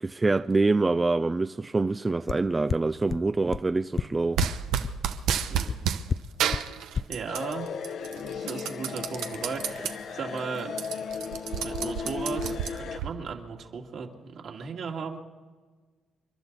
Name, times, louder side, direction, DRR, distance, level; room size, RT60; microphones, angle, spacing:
voice 1, 0.0-4.4, right 3 dB, 20° right, 0.4 m, -25 dB
sound 1, 2.3-2.4 2.7-2.8 3.1-3.2 3.5-3.6 4.0-4.1 4.4-4.5 4.8-4.9 5.3-5.4 5.7-5.8 6.1-6.2 6.5-6.6 7.0-7.1, left 6 dB, 45° left, 0.4 m, -27 dB
sound 2, 4.4-6.0 6.4-7.5 7.8-9.9 10.3-10.4 10.7-13.1, right 9 dB, 90° right, 0.9 m, -30 dB
voice 2, 7.1-7.7 8.2-10.7 11.6-15.2, right 5 dB, 65° right, 2.5 m, -36 dB
sound 3, 7.3-13.0, left 6 dB, 65° left, 1.1 m, -36 dB
29.5 x 11.5 x 4.1 m
cardioid pair, 90°, 0 cm